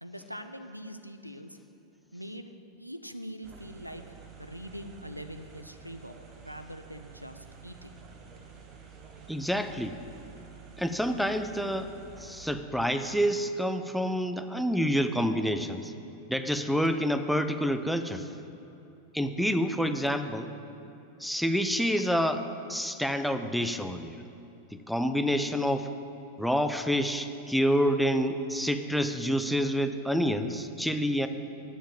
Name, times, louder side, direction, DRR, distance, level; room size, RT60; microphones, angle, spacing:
voice 1, 0.0-1.6 2.1-2.5 2.8-4.0 4.4-6.1 6.4-8.0, equal, 90° right, 8 dB, 0.5 m, -43 dB
sound 1, 3.4-12.5, right 6 dB, 30° right, 1.2 m, -50 dB
voice 2, 9.3-10.0 10.8-11.9 12.2-15.9 16.3-18.3 19.1-20.5 21.2-24.2 24.7-25.9 26.4-31.3, equal, ahead, 8 dB, 0.5 m, -28 dB
10.0 x 7.2 x 7.2 m, 2.9 s
figure-of-eight pair, 90°, 0 cm